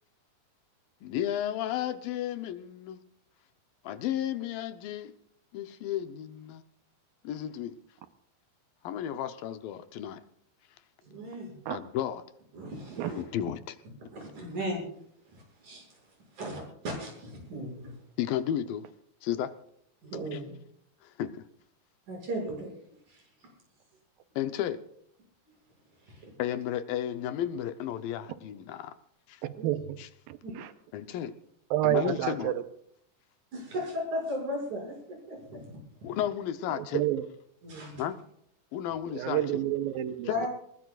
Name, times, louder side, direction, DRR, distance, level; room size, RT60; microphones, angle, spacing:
voice 1, 1.0-3.0 3.8-5.1 5.5-6.6 7.2-7.8 8.8-10.2 11.7-12.2 13.2-13.8 18.2-18.9 19.2-19.5 20.3-20.4 21.0-21.5 24.4-24.8 26.4-29.0 29.3-29.4 30.0-30.1 30.9-31.3 31.8-32.5 36.0-37.0 38.0-38.2 38.7-39.4 40.3-40.5, left 11 dB, 75° left, 10 dB, 2.5 m, -33 dB
voice 2, 11.0-11.7 12.5-13.2 14.1-14.8 15.3-18.0 20.0-20.5 22.1-22.7 23.1-23.5 26.0-26.3 29.6-29.7 30.4-30.5 33.5-35.7 37.6-38.1 40.3-40.5, equal, 55° right, 0 dB, 8.0 m, -37 dB
voice 3, 29.4-30.0 30.3-30.7 31.7-32.6 36.7-37.3 39.1-40.3, right 13 dB, 85° right, 10 dB, 2.6 m, -29 dB
21.5 x 20.5 x 2.4 m, 0.68 s
omnidirectional pair, 4.2 m